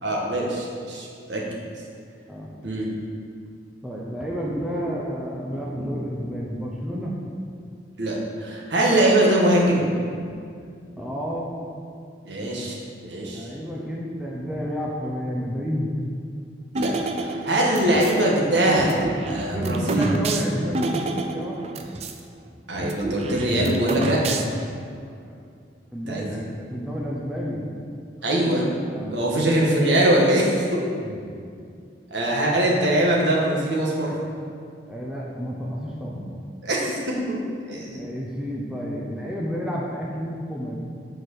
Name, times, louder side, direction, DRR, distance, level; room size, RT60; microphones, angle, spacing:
voice 1, 0.0-1.4 2.6-2.9 8.0-9.9 12.2-13.5 16.7-16.9 17.2-20.0 22.7-24.4 26.1-26.4 28.2-28.7 29.1-30.6 32.1-34.2 36.6-37.4 37.7-38.0, right 1 dB, 75° right, -3 dB, 1.6 m, -22 dB
voice 2, 3.8-7.2 10.9-11.5 13.3-15.9 19.5-21.6 25.1-25.4 25.9-27.6 28.9-29.2 31.0-31.2 34.9-36.3 38.0-40.8, equal, 5° right, -4 dB, 0.8 m, -30 dB
sound 1, 16.7-18.2 18.8-22.2 22.5-22.6 22.8-24.7, right 2 dB, 35° right, 0.5 m, -29 dB
8.1 x 4.7 x 6.3 m, 2.3 s
head